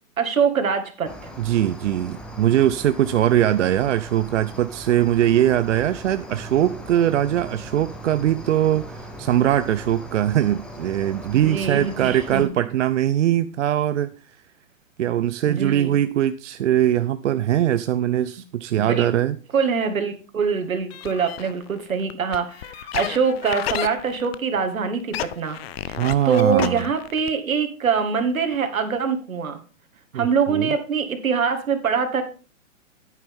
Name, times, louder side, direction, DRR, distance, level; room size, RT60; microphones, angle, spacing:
voice 1, 0.2-1.3 11.3-12.5 15.5-16.0 18.8-19.1 19.5-25.6 25.9-26.0 26.3-29.6 30.1-32.2, right 6 dB, 80° right, 2.1 m, -24 dB
Cricket, 1.1-12.4, right 1 dB, ahead, 0.4 m, -39 dB
voice 2, 1.4-14.1 15.0-19.4 26.0-26.8 30.1-30.7, right 11 dB, 65° right, 0.6 m, -21 dB
sound 1, 20.9-24.7 25.0-27.5 27.9-28.0 28.2-28.3 28.5-28.6, left 12 dB, 50° left, 0.7 m, -32 dB
9.9 x 9.3 x 3.6 m
hypercardioid pair, 130°, 40 cm